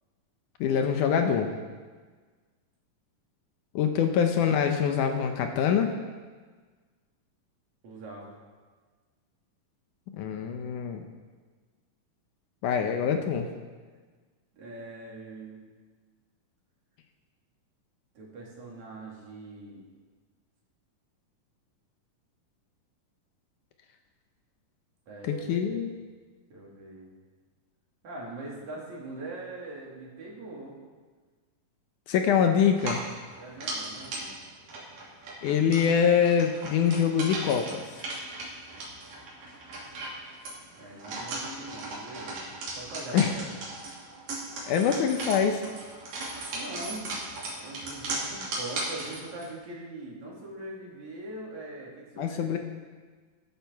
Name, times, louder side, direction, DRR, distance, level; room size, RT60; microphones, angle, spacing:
voice 1, 0.6-1.5 3.8-5.9 10.2-11.1 12.6-13.5 25.2-25.9 32.1-33.0 35.4-38.0 43.1-43.3 44.7-45.6 52.2-52.6, left 7 dB, 75° left, 5 dB, 2.2 m, -24 dB
voice 2, 7.8-8.4 14.5-15.6 18.2-19.8 25.1-25.8 26.5-27.1 28.0-30.8 33.4-34.3 40.8-43.5 46.5-47.2 47.6-52.6, right 2 dB, 60° right, -3 dB, 3.8 m, -42 dB
sound 1, 32.7-49.5, right 2 dB, 75° right, 4.6 m, -37 dB
14.0 x 12.5 x 4.6 m, 1.4 s
omnidirectional pair, 3.9 m